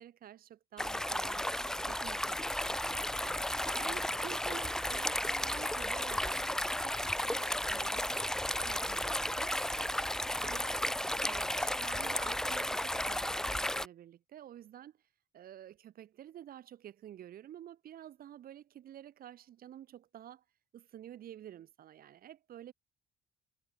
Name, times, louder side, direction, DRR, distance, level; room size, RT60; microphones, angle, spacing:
voice 1, 0.0-1.5 1.9-3.4 3.7-8.1 8.5-9.5 10.4-10.8 11.2-15.0 15.3-20.4 20.7-22.7, right 11 dB, 60° right, 6.9 m, -51 dB
sound 1, 0.8-13.9, left 1 dB, 5° left, 0.6 m, -34 dB
cardioid pair, 110°, 17 cm